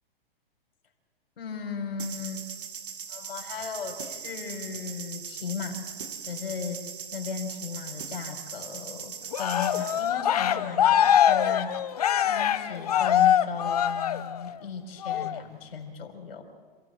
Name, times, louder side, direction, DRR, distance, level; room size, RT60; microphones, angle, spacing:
voice 1, 1.4-2.4 3.1-5.9 6.2-6.8 7.1-11.8 12.2-16.4, left 6 dB, 75° left, 4 dB, 4.4 m, -36 dB
sound 1, 2.0-10.1, right 7 dB, 60° right, 1.9 m, -40 dB
Cheering, 9.3-14.6 15.0-15.4, left 10 dB, 40° left, 0.9 m, -23 dB
27.5 x 15.5 x 7.6 m, 1.5 s
hypercardioid pair, 180°, 30 cm